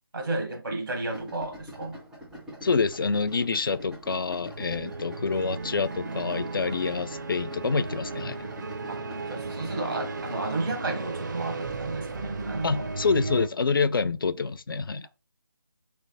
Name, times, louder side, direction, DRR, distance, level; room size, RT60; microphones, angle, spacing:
voice 1, 0.1-2.0 4.7-4.9 8.9-12.9, right 2 dB, 70° right, 1.1 m, -33 dB
Idling, 1.1-10.7, equal, ahead, 0.4 m, -45 dB
voice 2, 2.6-8.4 12.6-15.1, left 4 dB, 65° left, 0.4 m, -27 dB
sound 1, 4.4-13.5, right 3 dB, 50° right, 0.6 m, -35 dB
3.4 x 3.2 x 3.8 m
figure-of-eight pair, 160°, 13 cm